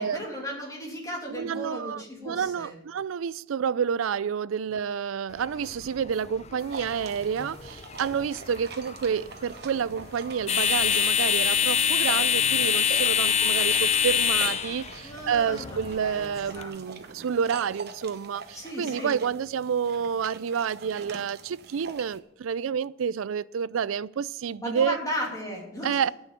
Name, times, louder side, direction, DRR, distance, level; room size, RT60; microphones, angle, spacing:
voice 1, 0.0-2.8 15.0-16.7 18.5-19.1 24.6-26.0, equal, 15° left, 2.8 m, -35 dB
voice 2, 1.3-25.0 25.8-26.1, right 7 dB, 85° right, 0.4 m, -29 dB
sound 1, 5.3-16.6, left 8 dB, 35° left, 0.5 m, -26 dB
sound 2, 6.6-22.2, right 4 dB, 50° right, 1.0 m, -44 dB
12.0 x 6.4 x 9.0 m
head